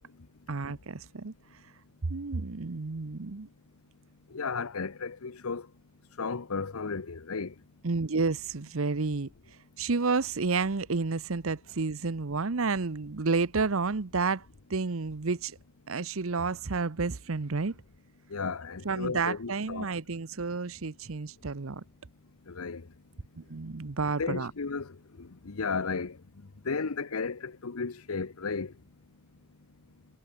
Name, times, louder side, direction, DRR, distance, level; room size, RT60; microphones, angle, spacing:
voice 1, 0.5-1.3 2.1-3.5 7.8-9.3 9.8-15.6 15.9-17.8 18.8-21.8 23.4-24.5, right 4 dB, 65° right, 0.9 m, -30 dB
voice 2, 4.3-5.7 6.2-7.5 18.3-19.9 22.5-22.8 24.2-26.2 26.6-28.7, left 4 dB, 80° left, 0.9 m, -34 dB
head